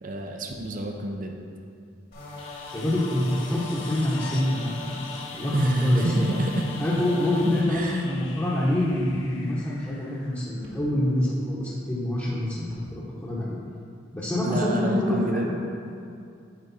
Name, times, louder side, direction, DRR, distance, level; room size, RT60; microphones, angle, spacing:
voice 1, 0.0-1.4 5.5-6.7 7.7-8.1 14.4-15.5, right 1 dB, 45° right, 2 dB, 0.6 m, -28 dB
sound 1, 2.1-7.6, left 2 dB, 55° left, 1.9 m, -40 dB
sound 2, 2.4-11.1 13.4-13.5, left 5 dB, 85° left, 0.7 m, -43 dB
voice 2, 2.7-5.0 5.3-5.5 5.8-6.3 6.8-13.6 14.1-15.5, left 1 dB, 15° left, -9 dB, 1.0 m, -26 dB
sound 3, 8.9-9.1 10.6-10.8 12.6-12.9, equal, 80° right, 1.8 m, -51 dB
10.0 x 4.8 x 4.2 m, 2.4 s
head